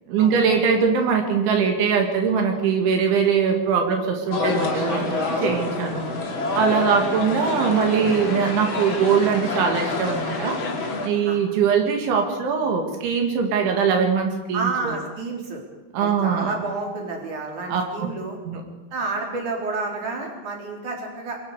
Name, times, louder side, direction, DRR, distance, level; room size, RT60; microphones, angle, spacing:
voice 1, 0.1-6.1 6.6-10.6 11.0-15.0 15.9-16.5 17.7-18.1 18.5-18.6, right 6 dB, 70° right, 3 dB, 4.5 m, -22 dB
sound 1, 4.3-11.1, left 3 dB, 35° left, 2.3 m, -27 dB
voice 2, 14.5-15.6 16.0-18.4 18.9-21.4, right 3 dB, 40° right, 0 dB, 4.9 m, -30 dB
25.0 x 23.0 x 5.0 m, 1.1 s
omnidirectional pair, 5.8 m